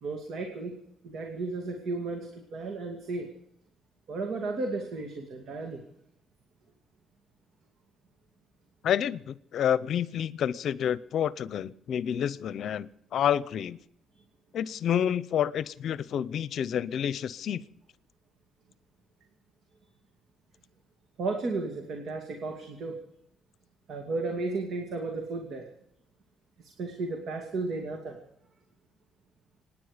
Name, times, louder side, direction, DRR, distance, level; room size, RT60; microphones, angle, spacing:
voice 1, 0.0-0.8 1.0-3.3 4.1-5.8 21.2-23.0 23.9-25.7 26.8-28.2, right 3 dB, 70° right, 3 dB, 2.4 m, -34 dB
voice 2, 8.8-13.8 14.5-17.6, left 9 dB, 70° left, 18 dB, 0.7 m, -29 dB
26.0 x 10.0 x 5.1 m, 0.73 s
cardioid pair, 90°, 0 cm